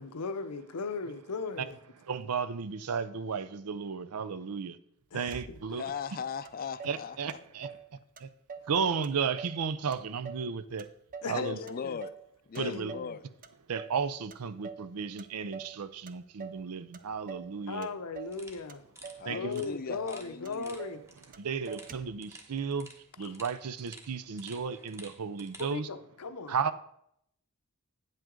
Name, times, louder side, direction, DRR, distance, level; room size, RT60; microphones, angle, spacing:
voice 1, 0.0-1.8 5.1-5.6 11.2-12.0 12.6-13.2 17.7-18.8 19.3-21.0 23.2-23.3 25.6-26.6, left 4 dB, 90° left, 0.7 m, -37 dB
voice 2, 2.1-4.8 5.1-5.8 6.8-7.7 8.2-8.3 8.7-10.9 11.3-11.6 12.6-12.9 13.7-17.9 19.2-19.5 21.4-22.9 23.2-25.9 26.5-26.8, right 6 dB, 80° right, 0.6 m, -34 dB
Motor vehicle (road), 5.3-5.9 6.4-6.5 6.8-7.9 8.2-8.8 9.0-9.6 9.9-11.4 11.7-12.3 12.5-13.1 13.4-14.0 14.3-14.9 15.2-15.8 16.1-16.6 16.9-17.5 17.8-18.4 18.7-19.3 19.6-19.7 19.9-20.2 20.4-21.0 21.3-21.4 21.7-22.2, right 6 dB, 40° right, 0.5 m, -45 dB
voice 3, 5.7-7.2 11.2-12.1 12.5-13.2 19.2-20.8, left 6 dB, 40° left, 0.4 m, -38 dB
sound 1, 18.3-25.7, right 1 dB, 15° right, 1.1 m, -53 dB
9.2 x 7.7 x 3.7 m
head